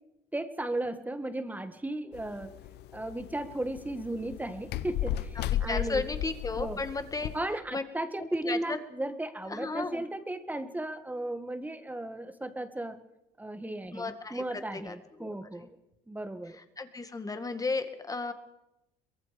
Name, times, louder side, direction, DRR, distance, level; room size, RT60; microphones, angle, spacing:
voice 1, 0.3-2.5 2.9-6.0 6.6-6.8 7.3-13.0 13.4-15.8 16.1-16.6, right 1 dB, 10° right, 10 dB, 1.7 m, -35 dB
sound 1, 2.1-7.4, left 12 dB, 80° left, 0.9 m, -35 dB
voice 2, 5.4-7.3 7.7-7.8 8.2-8.8 9.5-10.0 13.9-14.4 14.7-15.3 16.5-18.3, left 3 dB, 20° left, 8 dB, 2.1 m, -34 dB
23.5 x 21.5 x 5.2 m, 0.89 s
cardioid pair, 110°, 17 cm